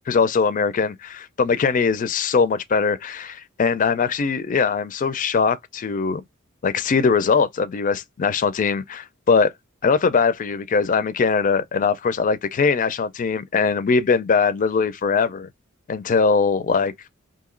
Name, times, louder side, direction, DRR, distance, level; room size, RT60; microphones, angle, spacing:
voice 1, 0.1-6.2 6.6-9.5 9.8-15.5 15.9-16.9, left 5 dB, 40° left, 0.4 m, -21 dB
2.9 x 2.7 x 3.7 m
head